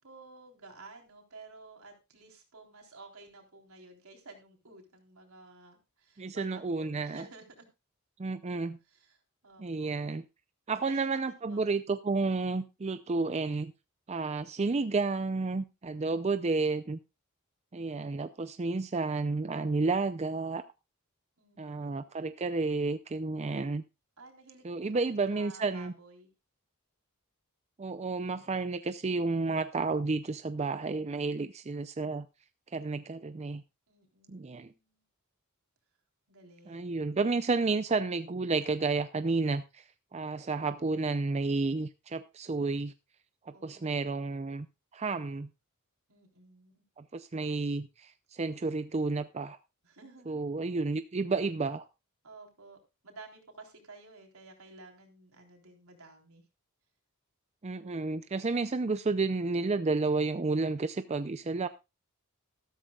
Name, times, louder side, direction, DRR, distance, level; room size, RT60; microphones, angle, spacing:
voice 1, 0.0-7.7 8.8-10.0 10.9-11.6 21.4-22.2 24.2-26.3 33.9-35.0 36.3-37.0 43.5-44.1 46.1-46.8 49.8-50.4 52.2-56.4, right 3 dB, 80° right, 3.6 m, -53 dB
voice 2, 6.2-7.2 8.2-8.8 9.6-10.2 10.7-13.7 14.1-17.0 17.7-20.6 21.6-23.8 24.6-25.9 27.8-32.3 32.7-33.6 34.3-34.7 36.7-39.8 40.1-42.9 43.5-44.7 44.9-45.5 47.0-49.6 50.3-51.8 57.6-61.7, right 3 dB, 30° right, 0.5 m, -31 dB
14.0 x 13.0 x 2.3 m
head